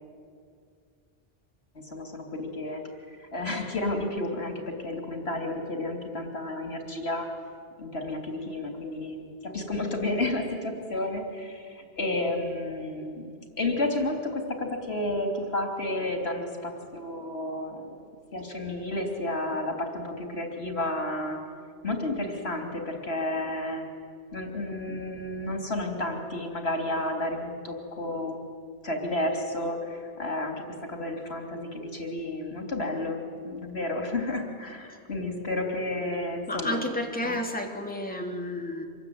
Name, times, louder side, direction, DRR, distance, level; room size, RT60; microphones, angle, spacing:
voice 1, 1.8-2.8 3.1-7.3 7.8-13.3 13.6-18.0 18.3-21.4 21.8-23.8 24.3-28.4 28.8-33.2 33.4-36.8 37.2-37.4, left 1 dB, 80° left, 3 dB, 3.6 m, -31 dB
voice 2, 36.5-38.9, left 1 dB, 10° left, 1 dB, 2.7 m, -31 dB
26.0 x 21.5 x 9.5 m, 2.1 s
omnidirectional pair, 1.0 m